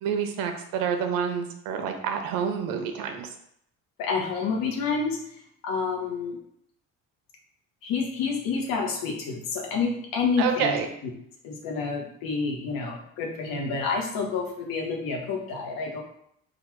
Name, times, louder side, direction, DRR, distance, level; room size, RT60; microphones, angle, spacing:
voice 1, 0.0-3.3 10.4-10.9, right 7 dB, 90° right, 5 dB, 0.7 m, -28 dB
voice 2, 4.0-5.2 5.6-6.4 7.8-10.8 11.4-16.0, left 5 dB, 80° left, 1 dB, 1.1 m, -28 dB
3.9 x 2.4 x 4.6 m, 0.71 s
cardioid pair, 125°, 34 cm